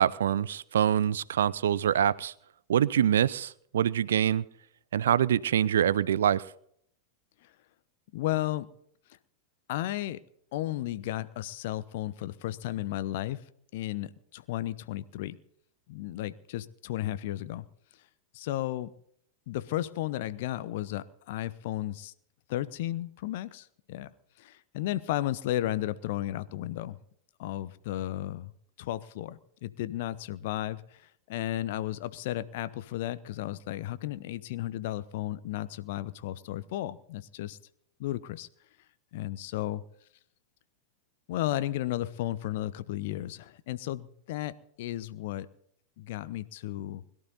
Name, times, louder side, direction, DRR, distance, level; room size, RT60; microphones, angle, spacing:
voice 1, 0.0-2.3 2.7-4.4 4.9-6.4, right 9 dB, 65° right, 20 dB, 0.5 m, -25 dB
voice 2, 8.1-8.7 9.7-10.2 10.5-13.4 13.7-15.4 15.9-17.6 18.3-18.9 19.5-22.1 22.5-24.1 24.4-27.0 27.4-28.5 28.8-31.0 31.3-37.6 38.0-38.5 39.1-39.8 41.3-45.5 46.0-47.0, left 14 dB, 50° left, 16 dB, 0.8 m, -34 dB
21.5 x 12.0 x 4.1 m, 0.68 s
figure-of-eight pair, 90°, 0 cm